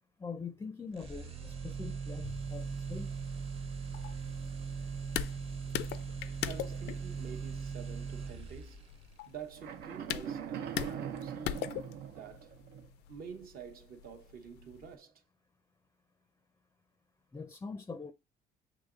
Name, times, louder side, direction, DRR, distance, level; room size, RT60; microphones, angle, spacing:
voice 1, 0.2-3.1 17.3-18.1, left 4 dB, 15° left, 0.4 m, -43 dB
sound 1, 1.0-8.9, right 5 dB, 35° right, 0.9 m, -40 dB
sound 2, 2.2-14.9, left 11 dB, 75° left, 0.4 m, -43 dB
voice 2, 6.4-8.9 9.3-11.7 12.2-12.6 13.1-15.2, right 7 dB, 60° right, 1.0 m, -48 dB
sound 3, 9.6-12.9, right 8 dB, 85° right, 0.6 m, -41 dB
6.6 x 3.0 x 2.4 m
cardioid pair, 110°, 17 cm